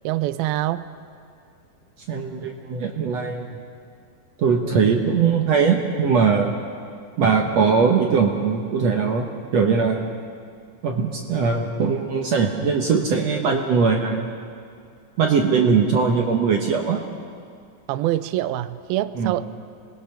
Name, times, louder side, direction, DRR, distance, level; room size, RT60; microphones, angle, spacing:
voice 1, 0.0-0.9 4.6-5.0 17.9-19.4, right 14 dB, 85° right, 14 dB, 2.5 m, -25 dB
voice 2, 2.1-3.5 4.4-6.5 7.2-9.3 9.5-10.1 10.8-14.3 15.2-17.0 19.2-19.3, right 5 dB, 60° right, 2 dB, 1.9 m, -20 dB
26.0 x 20.0 x 5.9 m, 2.3 s
omnidirectional pair, 4.2 m